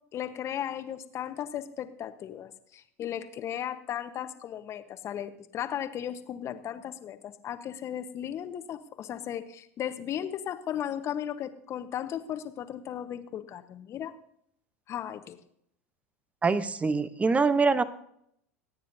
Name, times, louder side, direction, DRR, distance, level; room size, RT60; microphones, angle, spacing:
voice 1, 0.1-14.1 14.9-15.4, left 10 dB, 35° left, 10 dB, 1.1 m, -36 dB
voice 2, 16.4-17.8, right 4 dB, 15° right, 15 dB, 0.8 m, -24 dB
25.5 x 9.4 x 2.7 m, 0.71 s
hypercardioid pair, 90°, 8 cm